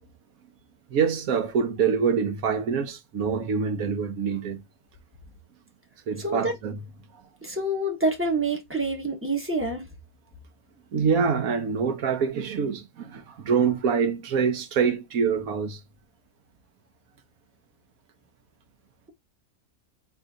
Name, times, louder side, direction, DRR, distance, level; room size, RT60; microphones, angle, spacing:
voice 1, 0.9-4.6 6.1-6.8 10.9-15.8, right 6 dB, 80° right, 1.4 m, -25 dB
voice 2, 6.2-6.5 7.4-9.8, right 2 dB, 10° right, 1.2 m, -27 dB
4.2 x 3.4 x 3.7 m
omnidirectional pair, 1.5 m